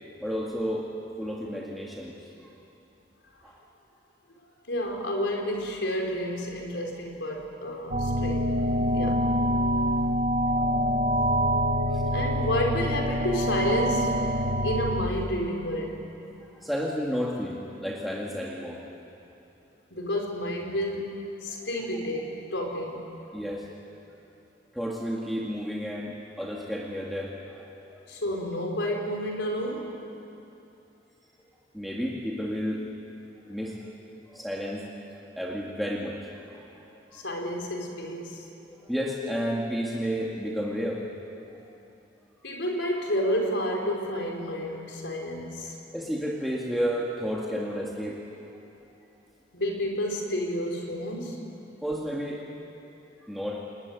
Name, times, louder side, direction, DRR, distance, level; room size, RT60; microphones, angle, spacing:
voice 1, 0.2-0.9 1.2-2.5 3.4-3.6 9.7-9.9 10.4-10.7 11.9-12.0 16.5-18.8 21.5-21.6 23.3-23.7 24.7-28.0 31.4-31.5 31.7-32.9 33.5-33.8 34.3-34.9 35.4-36.4 37.1-37.2 38.6-41.0 41.5-41.6 45.9-48.2 51.8-52.5 53.2-53.6, equal, ahead, -3 dB, 2.2 m, -32 dB
voice 2, 4.7-8.6 8.9-9.2 11.9-14.1 14.6-16.0 19.9-23.1 28.1-29.9 36.9-38.5 42.4-45.7 49.5-51.4, equal, 85° left, 0 dB, 4.8 m, -30 dB
sound 1, 7.9-15.1, equal, 50° right, 2.0 m, -25 dB
30.0 x 20.5 x 9.7 m, 2.8 s
head